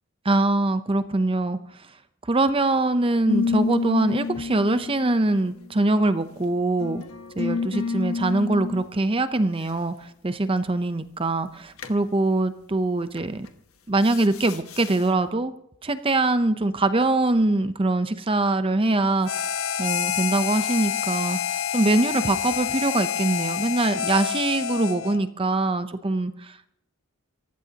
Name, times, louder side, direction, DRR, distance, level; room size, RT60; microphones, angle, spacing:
voice 1, 0.2-1.6 2.2-7.0 7.4-13.5 13.9-15.5 15.8-19.5 19.8-26.7, right 2 dB, 25° right, 11 dB, 0.7 m, -23 dB
sound 1, 3.3-6.1 6.8-8.9 11.8-12.0 13.2-13.5 14.0-15.0, left 4 dB, 85° left, 1.2 m, -29 dB
Harmonica, 19.2-25.2, left 9 dB, 65° left, 0.5 m, -28 dB
27.5 x 15.0 x 2.9 m, 0.73 s
head